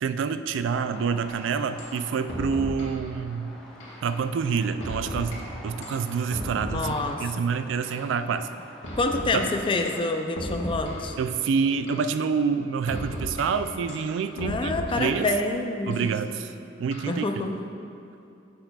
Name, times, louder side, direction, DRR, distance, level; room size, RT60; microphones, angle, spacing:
voice 1, 0.0-3.5 4.0-8.5 9.3-9.4 11.2-15.3 15.9-16.5 16.8-17.3, right 6 dB, 70° right, 10 dB, 0.3 m, -27 dB
sound 1, 0.9-10.1, equal, 5° left, 0.8 m, -47 dB
sound 2, 1.3-1.4 1.8-2.0 2.3-3.0 3.8-4.0 4.8-5.4 5.8-7.2 7.8-8.0 8.8-9.4 9.9-10.1 10.4-11.2 11.9-12.1 12.9-13.4 13.9-15.2 15.9-16.1 16.9-17.3, equal, 85° left, 1.5 m, -36 dB
voice 2, 6.7-7.2 9.0-11.1 14.4-16.2 17.1-17.6, left 2 dB, 25° left, 5 dB, 0.4 m, -27 dB
11.5 x 6.7 x 2.3 m, 2.7 s
head